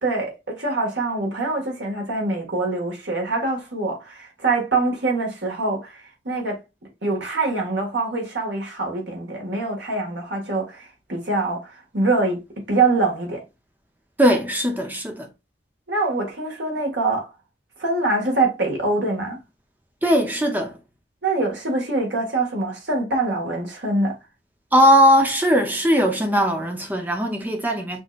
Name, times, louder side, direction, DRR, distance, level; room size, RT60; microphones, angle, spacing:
voice 1, 0.0-6.6 7.0-12.4 12.7-13.4 15.9-17.3 17.8-19.4 21.2-24.2, right 3 dB, 80° right, 1.8 m, -24 dB
voice 2, 14.2-15.3 20.0-20.8 24.7-28.0, equal, 10° right, 0.6 m, -19 dB
5.9 x 2.8 x 2.4 m
head